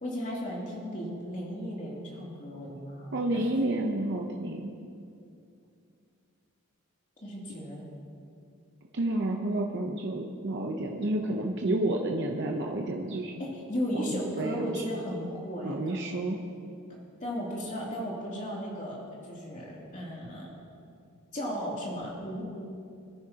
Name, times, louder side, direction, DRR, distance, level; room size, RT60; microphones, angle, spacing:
voice 1, 0.0-3.2 7.2-7.8 13.2-16.1 17.2-20.5 21.3-22.4, equal, 35° left, -4 dB, 2.9 m, -35 dB
voice 2, 3.1-4.7 8.9-13.3 13.9-14.8 15.6-16.4, right 1 dB, 55° right, 1 dB, 0.8 m, -30 dB
23.0 x 10.0 x 2.9 m, 2.5 s
head